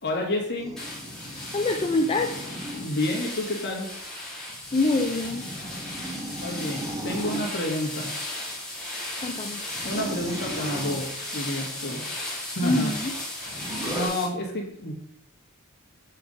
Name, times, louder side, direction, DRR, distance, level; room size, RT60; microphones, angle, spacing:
voice 1, 0.0-0.8 2.7-3.9 6.4-8.1 9.8-12.0 12.5-12.9 13.4-14.9, left 1 dB, 50° left, 0 dB, 1.8 m, -30 dB
sound 1, 0.6-2.9 4.5-7.5 9.7-11.1 13.5-14.1, right 1 dB, 15° right, 1.4 m, -36 dB
sound 2, 0.8-14.3, left 1 dB, 5° left, 2.0 m, -36 dB
voice 2, 1.3-2.4 4.7-5.5 9.2-9.6 12.6-13.1, left 2 dB, 25° left, 3 dB, 0.4 m, -25 dB
7.5 x 4.0 x 5.0 m, 0.75 s
head